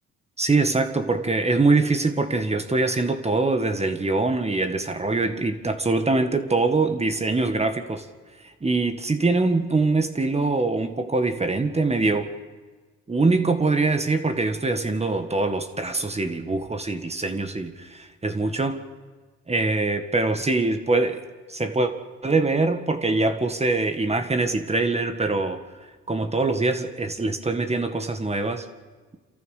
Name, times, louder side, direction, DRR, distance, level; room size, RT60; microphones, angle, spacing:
voice 1, 0.4-8.0 8.4-12.3 13.1-18.8 19.5-21.2 21.5-21.9 22.2-25.6 26.1-28.7, right 3 dB, 20° right, 7 dB, 1.7 m, -23 dB
28.0 x 14.0 x 6.7 m, 1.3 s
cardioid pair, 90°, 30 cm